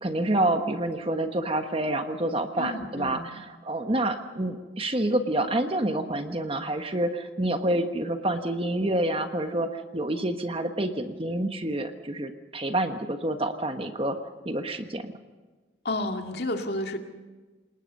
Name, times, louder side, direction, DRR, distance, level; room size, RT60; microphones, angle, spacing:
voice 1, 0.0-14.2 14.4-15.1, right 1 dB, 30° right, 7 dB, 1.3 m, -28 dB
voice 2, 2.6-3.4 15.8-17.0, left 1 dB, 55° left, 4 dB, 2.2 m, -31 dB
28.5 x 19.5 x 5.5 m, 1.3 s
head